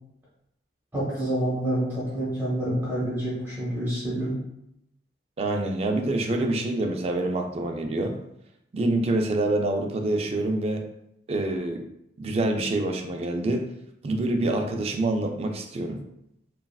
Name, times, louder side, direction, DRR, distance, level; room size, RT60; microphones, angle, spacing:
voice 1, 0.9-4.3, right 1 dB, 10° right, -9 dB, 0.8 m, -27 dB
voice 2, 5.4-8.2 8.7-10.8 11.3-11.8 12.2-13.6 14.0-16.0, right 2 dB, 35° right, 4 dB, 0.3 m, -26 dB
3.1 x 2.3 x 2.3 m, 0.79 s
head